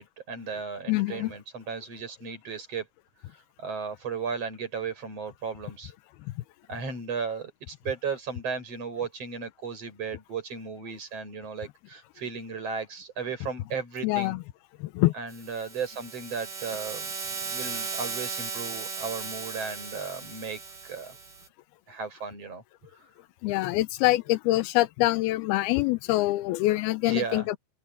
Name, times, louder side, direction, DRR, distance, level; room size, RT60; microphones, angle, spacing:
voice 1, 0.0-2.9 3.3-5.9 6.7-14.4 15.1-21.2 21.9-22.6 23.0-23.1 27.1-27.5, right 5 dB, 40° right, 8.2 m, -35 dB
voice 2, 0.9-1.3 14.0-14.4 14.8-15.1 23.4-27.6, left 18 dB, 90° left, 2.7 m, -25 dB
sound 1, 15.3-21.5, right 5 dB, 85° right, 9.5 m, -37 dB
open air
omnidirectional pair, 4.4 m